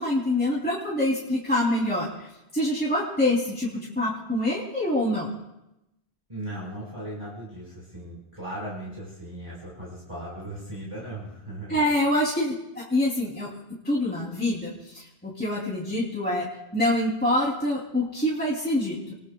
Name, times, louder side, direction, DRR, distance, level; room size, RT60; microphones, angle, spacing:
voice 1, 0.0-5.3 11.7-13.5 13.8-19.1, left 1 dB, 10° left, -6 dB, 3.1 m, -26 dB
voice 2, 6.3-11.8, right 1 dB, 30° right, -6 dB, 5.0 m, -37 dB
29.0 x 21.5 x 2.3 m, 0.90 s
omnidirectional pair, 1.0 m